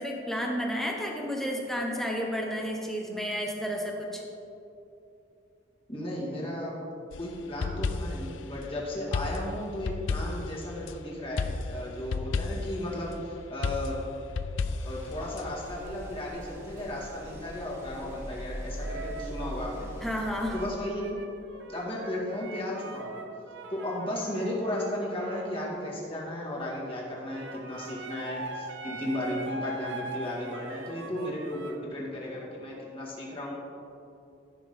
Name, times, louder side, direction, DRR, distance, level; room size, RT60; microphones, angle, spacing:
voice 1, 0.0-4.2 20.0-20.6, equal, ahead, 0 dB, 1.1 m, -31 dB
voice 2, 5.9-6.7 7.2-14.0 14.8-19.9 20.5-21.2 21.7-23.2 23.7-33.5, left 1 dB, 30° left, -4 dB, 2.1 m, -35 dB
sound 1, 7.1-8.3 9.1-10.9 11.4-12.8 13.6-15.4, left 4 dB, 85° left, 0.5 m, -32 dB
sound 2, 14.8-20.7, equal, 15° right, 2.2 m, -41 dB
sound 3, 18.8-19.5 20.3-26.0 27.1-31.8, right 2 dB, 70° right, 0.8 m, -41 dB
14.5 x 6.3 x 3.8 m, 2.7 s
head